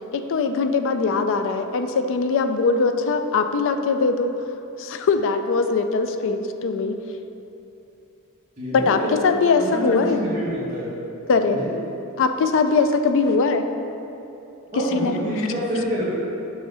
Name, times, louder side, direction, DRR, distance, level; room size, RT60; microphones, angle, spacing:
voice 1, 0.1-4.3 4.8-7.0 8.7-10.2 11.3-11.6 12.2-13.7 14.7-15.5, left 4 dB, 60° left, 8 dB, 0.4 m, -21 dB
voice 2, 8.6-9.2 9.6-10.9 11.6-11.7 14.7-16.0, equal, 30° right, -12 dB, 1.5 m, -27 dB
6.1 x 3.8 x 6.1 m, 2.9 s
head